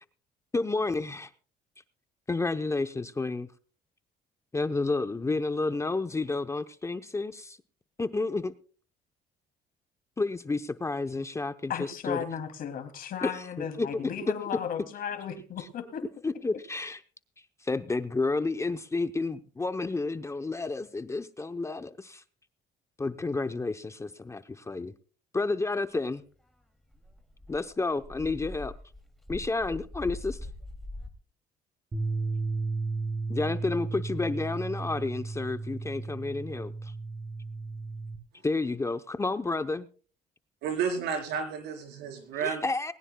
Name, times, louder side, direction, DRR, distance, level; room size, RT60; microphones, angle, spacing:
voice 1, 0.5-1.3 2.3-3.5 4.5-7.6 8.0-8.5 10.2-11.7 12.1-12.2 13.2-13.3 13.8-14.1 16.2-17.0 17.6-22.2 23.0-24.9 25.3-26.2 27.5-28.7 29.3-30.4 33.3-36.9 38.4-39.9 42.4-42.9, left 3 dB, 15° left, 0.7 m, -30 dB
voice 2, 11.7-16.0, left 8 dB, 60° left, 2.7 m, -35 dB
Dog, 26.5-26.6 26.9-31.1, left 1 dB, ahead, 2.6 m, -42 dB
sound 1, 31.9-38.2, right 3 dB, 25° right, 7.2 m, -34 dB
voice 3, 40.6-42.6, right 6 dB, 85° right, 4.2 m, -31 dB
20.5 x 17.5 x 2.2 m
cardioid pair, 110°, 17 cm